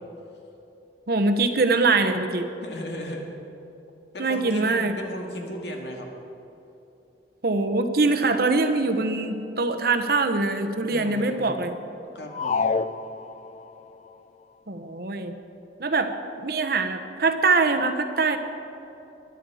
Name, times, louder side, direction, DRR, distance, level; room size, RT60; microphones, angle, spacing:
voice 1, 1.1-2.5 4.2-4.9 7.4-11.7 14.7-15.3 15.8-18.4, right 3 dB, 60° right, 7 dB, 1.1 m, -23 dB
voice 2, 2.6-3.3 4.1-6.1 10.9-11.5 12.1-12.7, equal, 75° left, 1 dB, 2.0 m, -36 dB
sound 1, 12.3-13.8, left 4 dB, 40° left, 0.3 m, -27 dB
22.0 x 11.0 x 4.9 m, 2.9 s
head